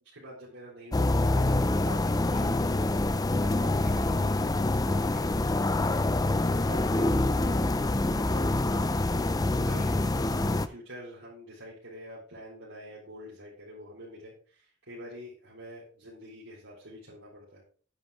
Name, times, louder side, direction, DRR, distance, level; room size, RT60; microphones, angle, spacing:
voice 1, 0.1-3.0 3.4-5.6 5.9-8.9 9.2-17.6, equal, 80° right, -8 dB, 4.0 m, -46 dB
sound 1, 0.9-10.7, left 2 dB, 20° left, 0.5 m, -26 dB
10.0 x 9.4 x 3.5 m, 0.42 s
head